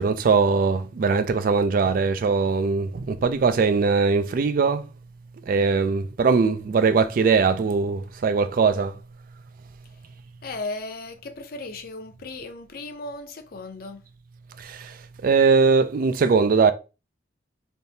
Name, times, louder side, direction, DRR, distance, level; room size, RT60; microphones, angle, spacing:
voice 1, 0.0-4.8 5.5-8.9 14.7-14.8 15.2-16.7, right 4 dB, 50° right, 0.3 m, -20 dB
voice 2, 10.4-14.0, left 2 dB, 55° left, 0.6 m, -36 dB
3.5 x 2.7 x 2.7 m
head